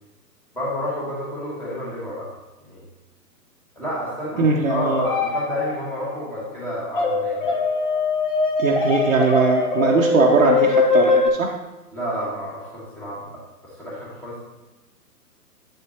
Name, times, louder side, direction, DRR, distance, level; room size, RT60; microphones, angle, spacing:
voice 1, 0.5-2.3 2.6-2.9 3.8-7.6 11.9-13.4 13.7-14.4, equal, 5° left, -7 dB, 1.2 m, -29 dB
voice 2, 4.4-5.0 8.6-11.5, right 3 dB, 50° right, -1 dB, 0.9 m, -20 dB
sound 1, 5.0-6.0 7.0-11.3, left 3 dB, 30° left, 0.9 m, -21 dB
8.1 x 7.0 x 2.8 m, 1.0 s
figure-of-eight pair, 135°, 49 cm